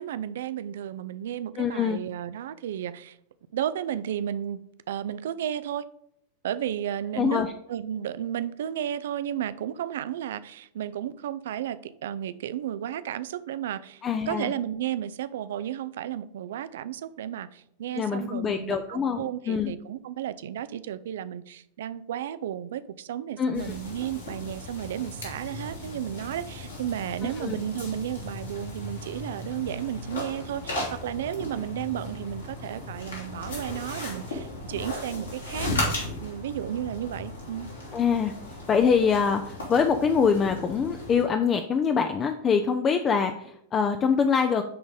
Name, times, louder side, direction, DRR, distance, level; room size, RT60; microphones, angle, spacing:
voice 1, 0.0-3.2 3.5-5.8 6.4-35.9 36.2-37.7, right 10 dB, 60° right, 16 dB, 0.4 m, -33 dB
voice 2, 1.6-2.0 7.2-7.5 14.0-14.5 18.0-19.7 23.4-23.7 27.2-27.6 37.9-38.3 38.7-44.6, left 6 dB, 25° left, 6 dB, 0.6 m, -24 dB
sound 1, 23.5-41.2, left 1 dB, 75° left, 3.0 m, -36 dB
10.0 x 4.0 x 5.1 m, 0.73 s
figure-of-eight pair, 90°, 0 cm